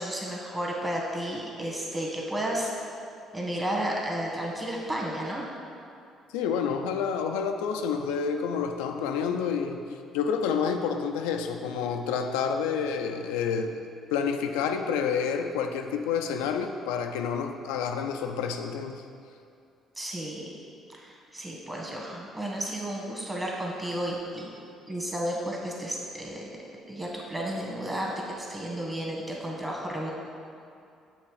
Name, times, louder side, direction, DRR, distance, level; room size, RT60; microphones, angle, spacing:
voice 1, 0.0-2.7 3.3-5.4 20.0-20.5 20.9-24.5 24.9-26.4 26.9-28.1 28.4-30.1, right 1 dB, 20° right, -2 dB, 1.5 m, -32 dB
voice 2, 6.3-9.8 10.1-13.8 14.1-19.0, left 6 dB, 90° left, 5 dB, 0.3 m, -29 dB
6.9 x 3.1 x 4.7 m, 2.5 s
supercardioid pair, 65°, 0 cm